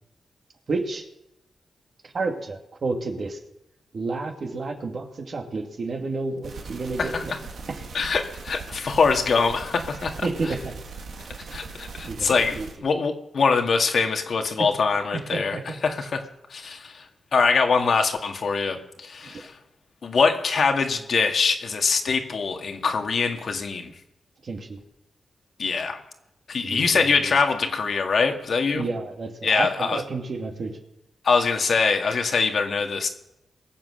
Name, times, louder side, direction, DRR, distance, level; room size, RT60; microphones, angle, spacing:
voice 1, 0.7-1.0 2.0-3.4 3.9-7.3 7.7-7.9 10.2-10.7 11.4-11.5 12.0-12.7 14.6-14.7 15.1-15.8 19.2-19.4 24.4-24.8 26.6-27.4 28.7-30.8, right 3 dB, 55° right, 3 dB, 2.3 m, -30 dB
sound 1, 6.4-12.8, right 4 dB, 80° right, 2.2 m, -39 dB
voice 2, 7.0-7.4 7.9-10.5 11.5-16.2 16.5-17.1 17.3-19.5 20.0-23.9 25.6-26.0 26.5-28.8 29.4-30.0 31.2-33.1, left 5 dB, 65° left, 4 dB, 1.9 m, -23 dB
22.0 x 7.6 x 6.5 m, 0.86 s
cardioid pair, 80°, 0 cm